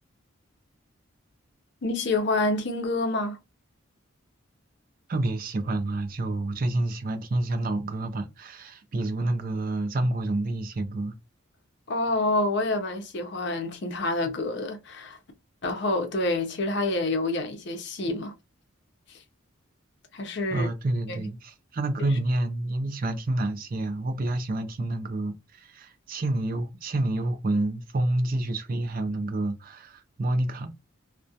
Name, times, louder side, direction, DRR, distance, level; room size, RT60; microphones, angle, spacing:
voice 1, 1.8-3.4 11.9-15.2 15.6-18.3 20.1-20.7 21.1-21.3, left 2 dB, 55° left, 0.5 m, -27 dB
voice 2, 5.1-11.2 20.5-30.7, right 2 dB, 45° right, 0.4 m, -28 dB
2.3 x 2.1 x 2.6 m
head